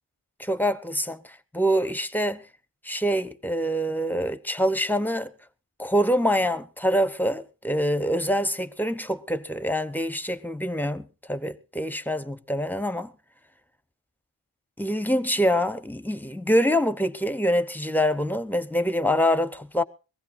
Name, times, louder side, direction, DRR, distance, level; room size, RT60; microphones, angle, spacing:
voice 1, 0.4-2.4 2.8-5.3 5.8-13.1 14.8-19.8, equal, 5° left, 0.9 m, -25 dB
22.0 x 16.0 x 2.7 m
wide cardioid pair, 45°, 44 cm